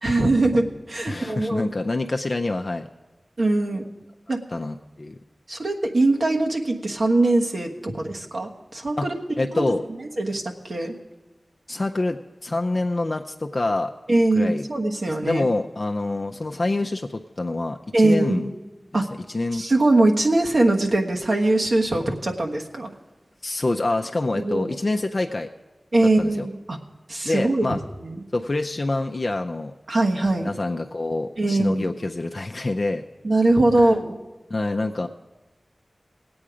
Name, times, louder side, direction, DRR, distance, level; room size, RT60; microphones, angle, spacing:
voice 1, 0.0-1.7 3.4-3.9 4.3-4.4 5.5-9.2 9.5-9.6 10.2-10.9 14.1-15.5 17.9-18.4 18.9-19.0 19.5-22.9 24.4-24.7 25.9-26.8 27.1-28.2 29.9-30.5 31.4-31.9 33.2-34.2, right 2 dB, 70° right, 1 dB, 1.3 m, -22 dB
voice 2, 1.1-2.9 4.5-5.2 9.0-9.1 9.4-9.8 11.7-13.9 14.3-14.6 15.1-18.5 18.9-19.1 19.3-19.6 23.4-25.5 26.2-26.5 27.2-27.8 28.3-29.7 30.4-33.0 33.8-33.9 34.5-35.1, left 2 dB, 50° left, 4 dB, 0.5 m, -26 dB
18.0 x 8.6 x 5.0 m, 1.2 s
wide cardioid pair, 65°, 0 cm